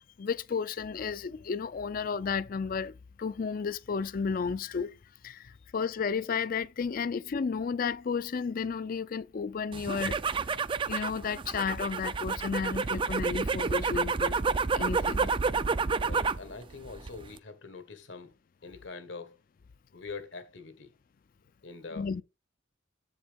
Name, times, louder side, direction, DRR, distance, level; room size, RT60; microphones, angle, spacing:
voice 1, 0.0-4.9 5.2-10.2 10.9-14.4 14.7-15.3 22.0-22.2, left 5 dB, 50° left, 0.4 m, -33 dB
sound 1, 9.7-16.5 16.8-17.4, right 5 dB, 25° right, 0.3 m, -29 dB
voice 2, 15.8-18.3 18.6-19.4 19.9-20.9 21.6-22.2, left 4 dB, 75° left, 1.4 m, -44 dB
8.0 x 7.1 x 3.5 m
head